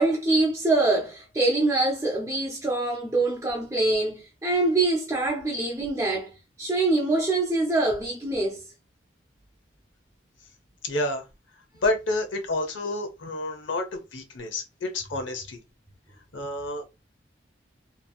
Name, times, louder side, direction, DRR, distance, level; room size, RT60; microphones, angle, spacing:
voice 1, 0.0-8.6, right 2 dB, 15° right, 0.5 m, -24 dB
voice 2, 10.8-11.2 11.8-15.6 16.3-16.8, left 2 dB, 80° left, 0.7 m, -29 dB
2.9 x 2.7 x 2.2 m
head